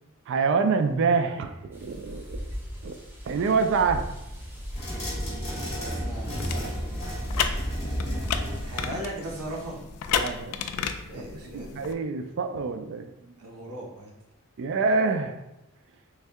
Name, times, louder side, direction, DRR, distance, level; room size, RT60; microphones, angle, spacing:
voice 1, 0.3-2.5 2.8-2.9 3.3-4.1 8.0-8.2 10.2-10.6 11.5-13.3 14.6-15.4, right 4 dB, 60° right, 7 dB, 0.4 m, -26 dB
sound 1, 1.7-8.9, equal, 10° right, 0.7 m, -37 dB
sound 2, 4.7-9.8, equal, 25° left, 1.4 m, -34 dB
voice 2, 5.5-6.6 8.6-9.8 11.1-11.8 13.4-14.1, right 1 dB, 75° right, -2 dB, 0.9 m, -38 dB
sound 3, 6.3-11.9, left 7 dB, 80° left, 0.3 m, -33 dB
3.3 x 2.7 x 3.4 m, 0.89 s
head